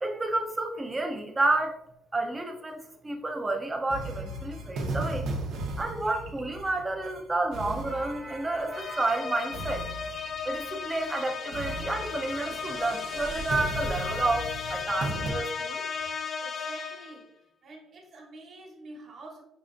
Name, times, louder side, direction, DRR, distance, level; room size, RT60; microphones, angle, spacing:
voice 1, 0.0-1.8 2.1-5.3 5.8-9.9 10.5-15.8, right 2 dB, 20° right, 4 dB, 0.6 m, -30 dB
sound 1, 3.9-9.2 9.5-10.7 11.0-11.2 11.5-15.3, right 2 dB, 80° right, 0.9 m, -36 dB
sound 2, 8.7-17.2, left 5 dB, 45° left, 0.3 m, -35 dB
voice 2, 16.4-17.4 17.6-19.4, right 2 dB, 50° right, 0 dB, 1.2 m, -47 dB
5.7 x 3.2 x 2.5 m, 0.79 s
cardioid pair, 140°, 0 cm